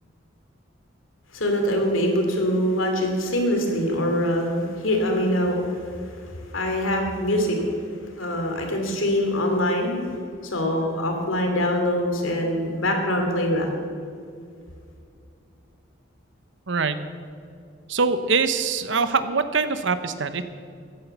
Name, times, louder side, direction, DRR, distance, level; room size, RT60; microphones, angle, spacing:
voice 1, 1.3-7.7 8.2-13.7, equal, 90° left, 3 dB, 2.8 m, -24 dB
voice 2, 16.7-17.0 17.9-20.4, right 4 dB, 70° right, 11 dB, 0.9 m, -23 dB
14.5 x 10.5 x 6.9 m, 2.4 s
head